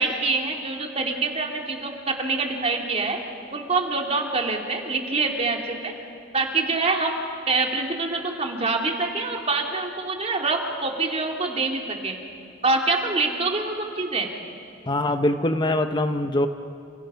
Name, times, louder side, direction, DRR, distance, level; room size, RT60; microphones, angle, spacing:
voice 1, 0.0-3.2 3.5-5.9 6.3-7.2 7.5-12.2 12.6-14.3, right 3 dB, 35° right, 1 dB, 2.8 m, -25 dB
voice 2, 14.9-16.5, left 1 dB, 25° left, 7 dB, 0.7 m, -23 dB
29.5 x 29.5 x 5.7 m, 2.4 s
head